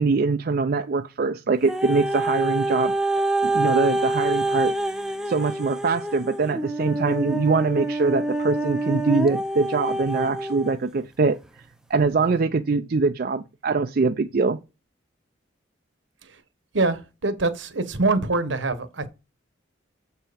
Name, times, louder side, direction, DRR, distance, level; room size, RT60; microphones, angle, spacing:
voice 1, 0.0-2.9 3.4-4.7 5.3-11.4 11.9-14.6, right 4 dB, 50° right, 0.4 m, -23 dB
sound 1, 1.7-10.8 11.4-11.5, right 1 dB, 5° right, 0.6 m, -26 dB
voice 2, 16.7-19.1, right 3 dB, 75° right, 1.2 m, -24 dB
7.5 x 4.6 x 5.1 m
head